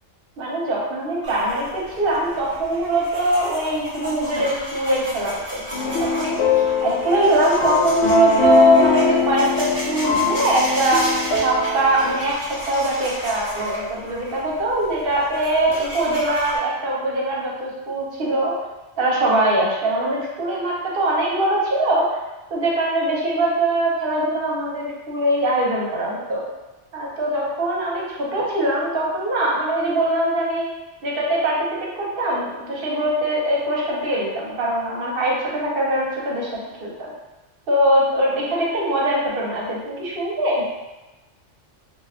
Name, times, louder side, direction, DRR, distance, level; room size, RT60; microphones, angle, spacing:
voice 1, 0.4-6.4 6.8-11.0 11.3-12.3 12.7-18.5 19.0-22.2 22.5-26.4 26.9-30.7 31.0-31.7 32.0-36.5 36.8-37.1 37.7-40.6, right 1 dB, 55° right, -4 dB, 0.9 m, -21 dB
sound 1, 1.2-16.6, equal, 10° right, 1.0 m, -34 dB
sound 2, 5.7-12.3, left 5 dB, 80° left, 1.0 m, -23 dB
2.7 x 2.3 x 3.5 m, 1.1 s
omnidirectional pair, 1.2 m